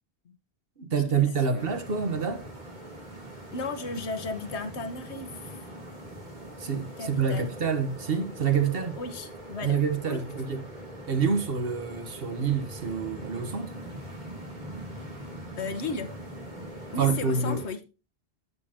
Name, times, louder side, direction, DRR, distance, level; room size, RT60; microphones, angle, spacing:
voice 1, 0.8-2.4 6.6-9.0 9.6-10.6 11.1-13.7 17.0-17.6, right 6 dB, 60° right, 1.4 m, -27 dB
sound 1, 1.6-17.7, right 1 dB, 45° right, 3.2 m, -42 dB
voice 2, 3.5-5.7 7.0-7.5 9.0-10.2 15.3-16.1 16.9-17.8, left 3 dB, 85° left, 1.4 m, -35 dB
11.0 x 8.3 x 2.9 m
omnidirectional pair, 1.1 m